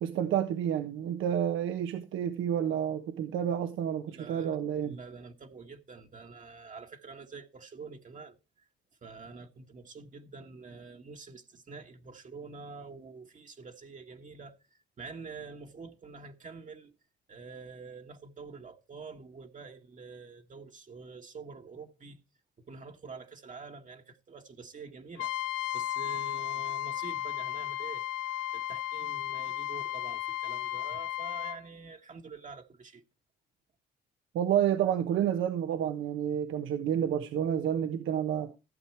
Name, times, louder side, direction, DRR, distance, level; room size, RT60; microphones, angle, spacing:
voice 1, 0.0-5.0 34.3-38.5, right 9 dB, 80° right, 1.1 m, -29 dB
voice 2, 4.1-4.6 4.8-8.4 9.0-16.9 17.3-22.2 22.7-25.3 25.7-28.1 28.5-33.0, right 4 dB, 40° right, 1.4 m, -47 dB
Trumpet, 25.2-31.6, left 13 dB, 90° left, 0.7 m, -34 dB
15.0 x 7.7 x 4.5 m
cardioid pair, 90°, 20 cm